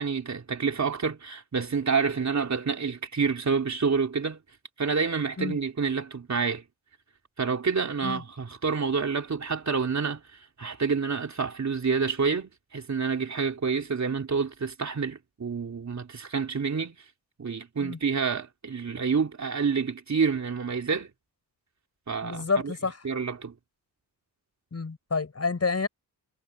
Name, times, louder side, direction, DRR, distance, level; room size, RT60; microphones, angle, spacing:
voice 1, 0.0-4.4 4.8-6.6 7.4-10.2 10.6-17.0 17.4-21.1 22.1-22.7 23.0-23.5, right 5 dB, 45° right, 3.5 m, -28 dB
voice 2, 22.2-23.0 24.7-25.9, left 4 dB, 40° left, 7.1 m, -29 dB
cardioid pair, 70°, 40 cm